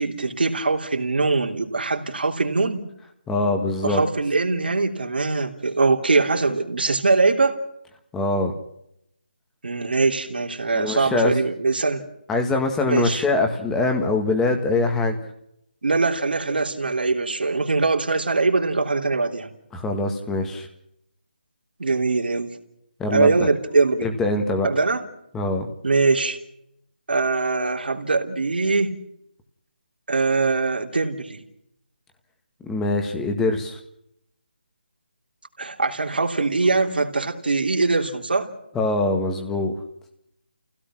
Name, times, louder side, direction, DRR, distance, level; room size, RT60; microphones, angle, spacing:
voice 1, 0.0-2.8 3.8-7.6 9.6-12.0 12.9-13.2 15.8-19.5 21.8-22.5 23.1-24.1 24.6-25.0 25.8-26.4 27.1-29.0 30.1-31.4 35.6-38.5, right 3 dB, 75° right, 2 dB, 3.2 m, -22 dB
voice 2, 3.3-4.0 8.1-8.5 10.7-11.3 12.3-15.2 19.7-20.7 23.0-23.5 24.0-24.7 25.3-25.7 32.6-33.8 38.7-39.7, left 2 dB, 5° left, 5 dB, 1.7 m, -23 dB
29.0 x 16.5 x 6.1 m, 0.77 s
figure-of-eight pair, 165°, 5 cm